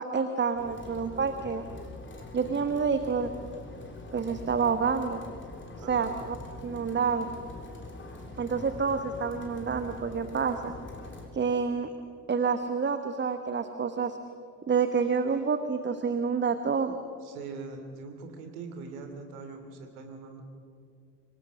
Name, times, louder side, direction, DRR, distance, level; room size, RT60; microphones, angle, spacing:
voice 1, 0.0-1.6 2.3-3.3 4.1-5.2 5.9-6.4 6.6-7.3 8.4-10.7 11.3-11.9 12.3-14.2 14.7-17.0, right 5 dB, 25° right, 9 dB, 1.2 m, -28 dB
sound 1, 0.6-11.3, left 2 dB, 25° left, 3.8 m, -44 dB
voice 2, 5.8-6.3 17.2-20.4, right 4 dB, 70° right, 5 dB, 2.9 m, -42 dB
25.5 x 18.5 x 6.2 m, 2.3 s
figure-of-eight pair, 50°, 46 cm